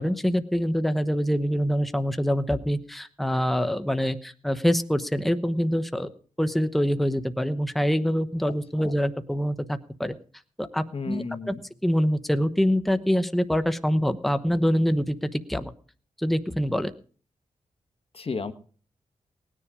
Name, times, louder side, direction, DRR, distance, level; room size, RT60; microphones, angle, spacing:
voice 1, 0.0-6.1 6.4-10.1 10.6-11.5 11.8-15.7 16.2-16.9, equal, ahead, 10 dB, 1.0 m, -25 dB
voice 2, 8.5-8.9 10.9-11.6 18.1-18.5, left 4 dB, 45° left, 10 dB, 1.4 m, -34 dB
19.0 x 10.0 x 4.9 m, 0.42 s
cardioid pair, 85°, 13 cm